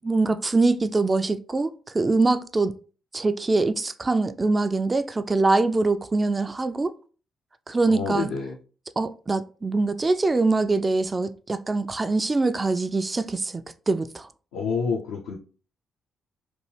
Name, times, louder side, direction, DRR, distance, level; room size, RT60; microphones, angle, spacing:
voice 1, 0.0-2.7 3.1-6.9 7.7-8.3 9.0-14.3, right 3 dB, 30° right, 0.3 m, -23 dB
voice 2, 7.9-8.6 14.5-15.3, left 5 dB, 75° left, 0.4 m, -28 dB
3.0 x 2.2 x 3.2 m
hypercardioid pair, 40°, 0 cm